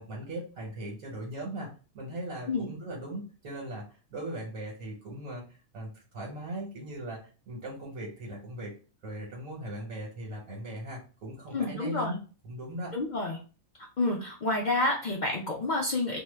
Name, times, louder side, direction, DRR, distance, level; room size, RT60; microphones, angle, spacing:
voice 1, 0.0-7.2 7.5-8.7 9.0-12.9, right 1 dB, 90° right, -2 dB, 1.3 m, -39 dB
voice 2, 11.5-12.2 12.9-13.4 14.0-16.2, left 2 dB, 75° left, -1 dB, 0.4 m, -29 dB
2.6 x 2.1 x 3.2 m, 0.35 s
omnidirectional pair, 1.4 m